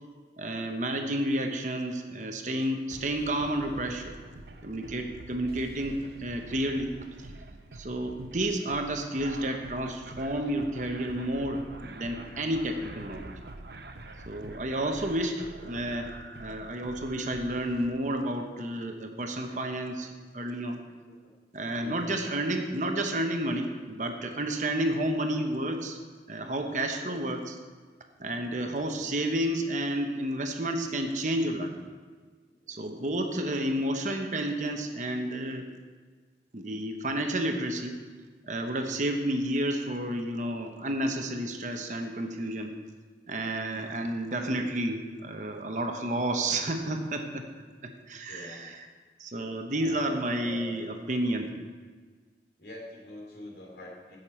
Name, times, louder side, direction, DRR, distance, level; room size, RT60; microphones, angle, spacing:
voice 1, 0.4-4.2 4.6-7.3 7.7-13.3 14.3-16.1 16.4-20.1 20.3-20.8 21.5-26.0 26.3-27.5 28.2-31.8 32.7-35.7 36.5-38.0 38.5-42.7 43.3-47.4 47.8-48.8 49.2-51.5, right 1 dB, 45° right, 4 dB, 1.0 m, -31 dB
sound 1, 2.9-17.9, right 2 dB, 65° right, 0.7 m, -46 dB
voice 2, 21.8-22.2 27.0-27.2 28.5-28.9 32.6-33.0 43.5-43.8 48.3-48.7 49.7-50.9 52.6-54.2, left 1 dB, 75° left, -1 dB, 2.7 m, -45 dB
16.0 x 6.6 x 4.4 m, 1.5 s
head